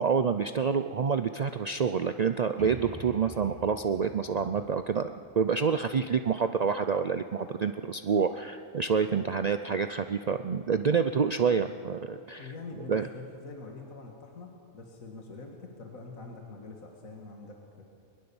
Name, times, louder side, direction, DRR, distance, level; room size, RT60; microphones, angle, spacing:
voice 1, 0.0-12.5 12.9-13.1, right 6 dB, 70° right, 9 dB, 0.3 m, -28 dB
sound 1, 2.6-6.2, equal, 5° left, 2.5 m, -47 dB
voice 2, 12.4-17.8, left 3 dB, 70° left, 1 dB, 2.3 m, -45 dB
21.5 x 21.5 x 7.1 m, 2.5 s
omnidirectional pair, 1.5 m